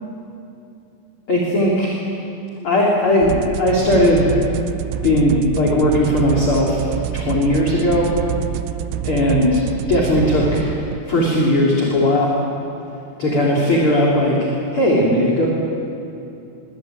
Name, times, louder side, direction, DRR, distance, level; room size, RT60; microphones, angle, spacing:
voice 1, 1.3-2.0 2.6-4.3 5.0-8.1 9.0-10.7 11.1-12.3 13.2-15.5, left 1 dB, 30° left, -4 dB, 3.7 m, -17 dB
sound 1, 3.2-11.0, right 12 dB, 85° right, 3.5 m, -27 dB
26.5 x 23.5 x 9.2 m, 2.8 s
omnidirectional pair, 6.0 m